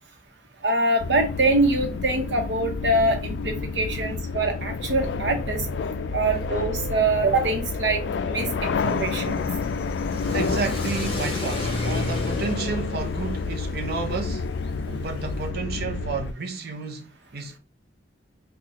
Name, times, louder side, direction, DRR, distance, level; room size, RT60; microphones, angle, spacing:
voice 1, 0.6-5.6 6.1-9.4, right 2 dB, 80° right, 0.9 m, -24 dB
sound 1, 1.0-16.3, left 4 dB, 75° left, 0.3 m, -29 dB
Car / Accelerating revving vroom, 8.8-15.5, left 1 dB, 35° left, 0.8 m, -34 dB
voice 2, 10.3-14.5 14.9-17.6, right 5 dB, 60° right, 0.6 m, -31 dB
4.0 x 2.3 x 2.8 m
head